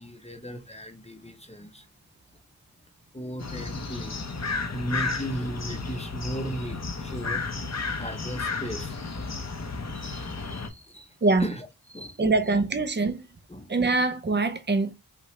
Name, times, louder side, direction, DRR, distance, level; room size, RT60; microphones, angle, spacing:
voice 1, 0.0-1.9 3.1-4.2 4.7-7.4 8.0-9.0 9.9-12.2 13.5-13.8, equal, 20° left, 0.8 m, -36 dB
sound 1, 3.4-10.7, left 4 dB, 50° left, 0.8 m, -33 dB
voice 2, 12.2-13.3 13.7-14.9, right 3 dB, 30° right, 0.6 m, -23 dB
5.8 x 2.4 x 3.2 m
wide cardioid pair, 50°, 36 cm